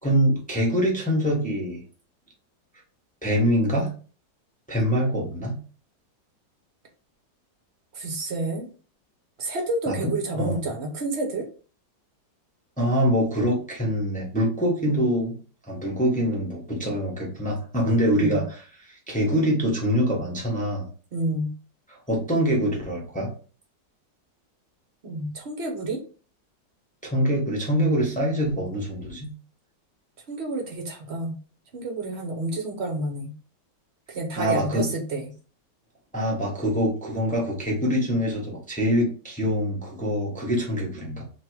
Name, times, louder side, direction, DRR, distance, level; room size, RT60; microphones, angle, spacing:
voice 1, 0.0-1.8 3.2-3.9 4.7-5.6 9.9-10.6 12.8-15.4 15.7-20.9 21.9-23.3 27.0-29.3 34.4-34.9 36.1-41.2, equal, 5° left, -3 dB, 0.9 m, -24 dB
voice 2, 8.0-8.7 9.4-11.5 18.1-18.4 21.1-21.5 25.0-26.0 30.3-31.4 31.7-33.3 34.1-35.3, right 2 dB, 45° right, 3 dB, 1.0 m, -29 dB
3.5 x 3.1 x 4.6 m, 0.38 s
omnidirectional pair, 2.0 m